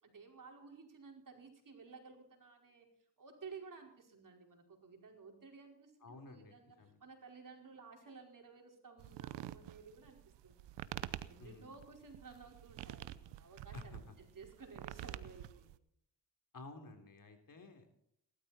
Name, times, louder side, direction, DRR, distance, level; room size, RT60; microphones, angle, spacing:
voice 1, 0.0-2.9 3.2-11.0 11.3-15.7, right 5 dB, 50° right, 2 dB, 5.0 m, -55 dB
voice 2, 6.0-7.0 11.4-11.7 13.7-14.0 16.5-17.9, left 2 dB, 50° left, 5 dB, 3.7 m, -52 dB
sound 1, 9.0-15.8, right 14 dB, 90° right, 0.8 m, -47 dB
19.0 x 13.0 x 4.4 m, 0.72 s
supercardioid pair, 55°, 42 cm